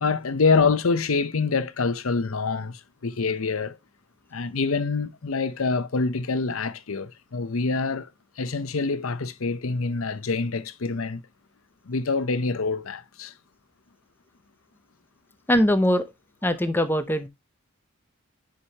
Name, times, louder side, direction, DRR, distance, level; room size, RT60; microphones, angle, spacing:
voice 1, 0.0-3.8 4.3-8.1 8.4-11.2 11.9-13.3, left 4 dB, 75° left, 0.7 m, -26 dB
voice 2, 15.5-16.0 16.4-17.3, equal, 10° left, 0.7 m, -21 dB
9.9 x 5.0 x 2.9 m
head